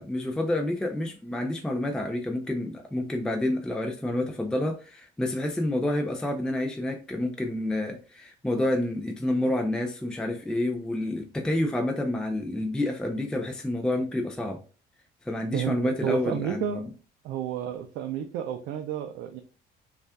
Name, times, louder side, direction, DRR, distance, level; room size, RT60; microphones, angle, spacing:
voice 1, 0.0-14.6 15.2-16.9, left 1 dB, 5° left, 3 dB, 0.4 m, -29 dB
voice 2, 16.0-16.8 17.2-19.4, right 10 dB, 85° right, 5 dB, 0.4 m, -31 dB
5.2 x 2.4 x 2.2 m, 0.36 s
cardioid pair, 110°, 17 cm